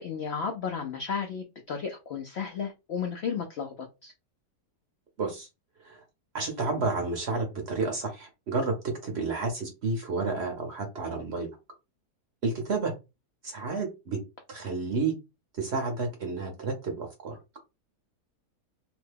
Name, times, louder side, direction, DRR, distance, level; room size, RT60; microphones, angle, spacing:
voice 1, 0.0-3.7 4.0-4.1, left 6 dB, 70° left, 0.6 m, -33 dB
voice 2, 5.2-5.5 5.8-6.0 6.3-8.8 9.0-11.5 12.4-12.9 13.4-14.2 14.5-15.1 15.6-17.4, right 3 dB, 50° right, 0.9 m, -30 dB
2.9 x 2.2 x 3.3 m
omnidirectional pair, 1.7 m